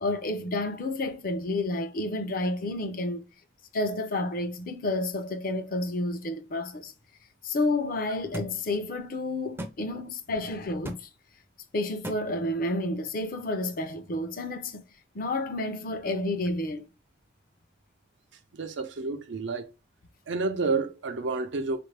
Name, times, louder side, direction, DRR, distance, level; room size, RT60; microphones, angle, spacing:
voice 1, 0.0-3.2 3.7-6.9 7.4-11.1 11.7-14.8 15.1-16.9, left 2 dB, 50° left, 0.6 m, -30 dB
sound 1, 8.3-8.5 9.6-9.7 10.8-11.0 12.0-12.2, equal, 15° right, 0.4 m, -34 dB
voice 2, 18.5-19.7 20.3-21.8, right 3 dB, 85° right, 0.6 m, -29 dB
4.3 x 2.6 x 3.3 m
head